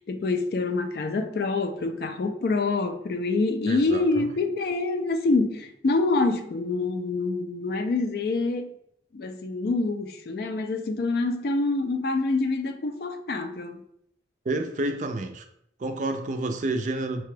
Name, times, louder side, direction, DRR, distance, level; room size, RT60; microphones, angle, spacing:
voice 1, 0.0-8.7 9.1-13.8, left 3 dB, 55° left, 8 dB, 0.4 m, -26 dB
voice 2, 3.6-4.3 14.5-15.4 15.8-17.2, right 2 dB, 40° right, 6 dB, 0.4 m, -29 dB
5.7 x 2.2 x 3.2 m, 0.73 s
head